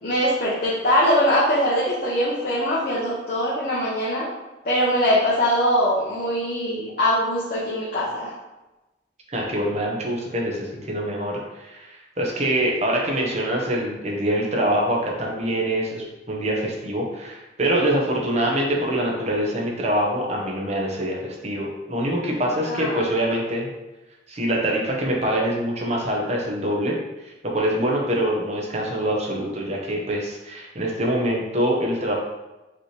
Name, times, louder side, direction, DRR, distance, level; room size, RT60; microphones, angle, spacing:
voice 1, 0.0-4.3 4.6-8.3 22.7-23.0, equal, 50° left, -7 dB, 0.9 m, -22 dB
voice 2, 9.3-23.7 24.3-26.9 27.2-32.1, right 1 dB, 40° right, -2 dB, 0.9 m, -24 dB
5.1 x 3.0 x 3.3 m, 1.1 s
head